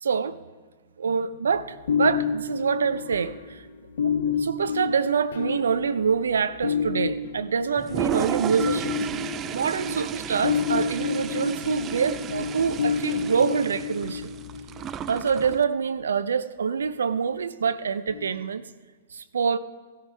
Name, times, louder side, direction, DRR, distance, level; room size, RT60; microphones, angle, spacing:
voice 1, 0.0-0.4 1.0-3.6 4.4-9.0 9.5-14.3 15.1-18.6 19.1-19.6, right 6 dB, 80° right, 0.5 m, -26 dB
sound 1, 1.5-15.3 18.1-18.3, left 6 dB, 70° left, 0.9 m, -30 dB
Toilet flush, 7.8-15.6, right 9 dB, 30° right, 0.4 m, -33 dB
15.5 x 13.0 x 3.4 m
hypercardioid pair, 115°, 0 cm